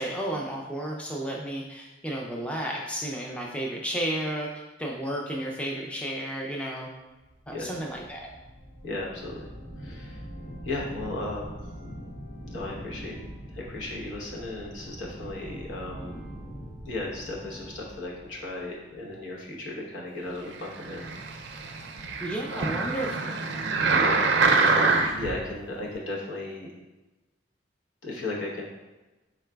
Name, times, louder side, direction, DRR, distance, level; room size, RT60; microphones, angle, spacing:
voice 1, 0.0-6.9 7.5-8.3 22.2-23.3, right 1 dB, 5° left, -1 dB, 0.3 m, -32 dB
sound 1, 7.2-19.3, equal, 65° left, 1.2 m, -43 dB
voice 2, 8.8-9.5 9.8-10.3 10.6-11.6 12.5-13.1 13.5-16.1 16.8-21.7 22.5-22.8 23.8-26.7 28.0-28.6, left 2 dB, 80° left, -3 dB, 0.9 m, -36 dB
sound 2, 20.8-25.4 26.0-26.1, right 4 dB, 65° right, 0.4 m, -25 dB
4.7 x 3.8 x 2.2 m, 1.1 s
head